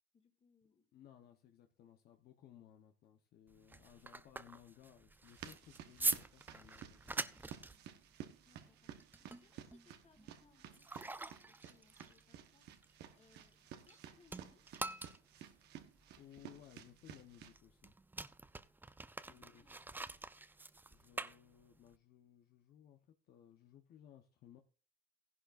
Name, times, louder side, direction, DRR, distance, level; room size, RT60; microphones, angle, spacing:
voice 1, 0.1-0.9 7.6-8.0 8.4-12.7 13.1-14.8 19.2-20.2, left 5 dB, 40° left, 5 dB, 2.2 m, -71 dB
voice 2, 0.9-7.4 16.1-17.9 19.1-19.9 20.9-24.6, left 10 dB, 70° left, 5 dB, 1.0 m, -61 dB
sound 1, 3.5-14.0 14.3-22.0, right 3 dB, 10° right, 0.5 m, -45 dB
sound 2, 5.2-17.5, right 10 dB, 80° right, 1.2 m, -54 dB
15.0 x 11.0 x 2.5 m, 0.37 s
cardioid pair, 110°, 17 cm